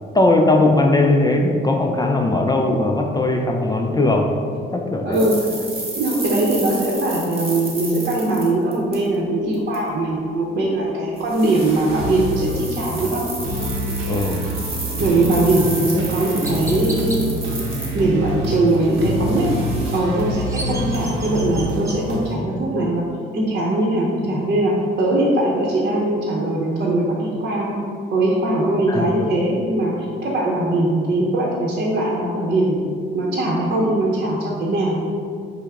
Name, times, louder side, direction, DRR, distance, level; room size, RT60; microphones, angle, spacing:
voice 1, 0.1-4.4 4.7-5.2 14.1-14.5 28.9-29.1, left 2 dB, 20° left, 2 dB, 0.3 m, -18 dB
voice 2, 5.0-5.4 6.0-13.2 14.9-17.3 17.9-19.5 19.9-23.0 23.3-27.8 28.1-29.9 30.2-32.8 33.1-35.0, right 2 dB, 50° right, -4 dB, 0.8 m, -20 dB
sound 1, 5.1-9.2 9.5-9.8 11.2-18.3 18.7-20.0, right 2 dB, 30° right, 1.3 m, -32 dB
sound 2, 11.9-22.4, equal, 85° right, 0.7 m, -27 dB
Chirp tweet, 16.4-17.2 20.1-22.0, right 1 dB, 15° right, 0.7 m, -34 dB
5.4 x 2.1 x 4.7 m, 2.4 s
cardioid pair, 90°, 20 cm